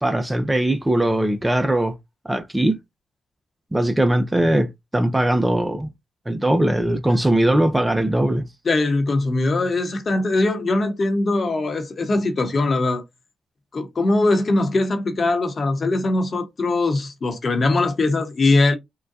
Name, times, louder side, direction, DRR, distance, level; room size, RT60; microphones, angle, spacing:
voice 1, 0.0-1.9 2.2-2.8 3.7-5.9 6.3-8.5, right 1 dB, 15° right, 0.6 m, -20 dB
voice 2, 8.6-13.0 13.7-18.8, left 2 dB, 50° left, 0.9 m, -21 dB
3.7 x 2.2 x 2.6 m
supercardioid pair, 50°, 0 cm